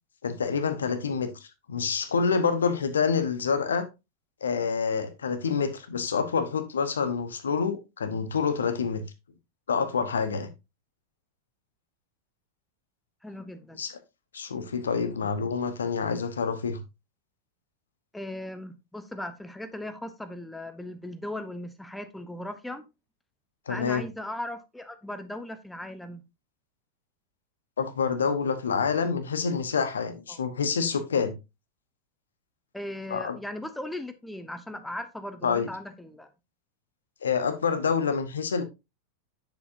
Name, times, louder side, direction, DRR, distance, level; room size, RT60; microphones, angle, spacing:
voice 1, 0.2-3.9 4.4-9.0 9.7-10.5 13.8-14.0 14.3-16.8 23.7-24.0 27.8-31.3 33.1-33.4 35.4-35.7 37.2-38.6, left 6 dB, 70° left, 1.0 m, -27 dB
voice 2, 13.2-13.8 18.1-22.9 23.7-26.2 30.3-30.5 32.7-36.3, left 1 dB, 5° left, 0.7 m, -38 dB
8.1 x 6.9 x 2.7 m
figure-of-eight pair, 90°, 0 cm